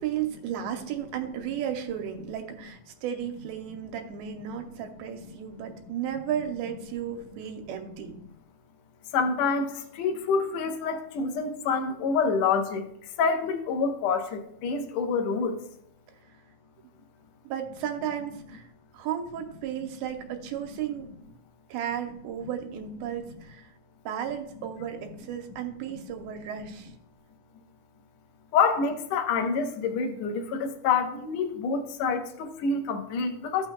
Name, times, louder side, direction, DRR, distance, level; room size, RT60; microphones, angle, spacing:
voice 1, 0.0-8.2 17.4-18.7 18.9-21.1 21.7-23.7 24.1-26.9, right 9 dB, 90° right, 5 dB, 2.7 m, -34 dB
voice 2, 9.1-12.9 13.2-15.6 28.5-33.7, left 5 dB, 75° left, 4 dB, 1.6 m, -27 dB
15.0 x 6.0 x 2.2 m, 0.74 s
omnidirectional pair, 4.3 m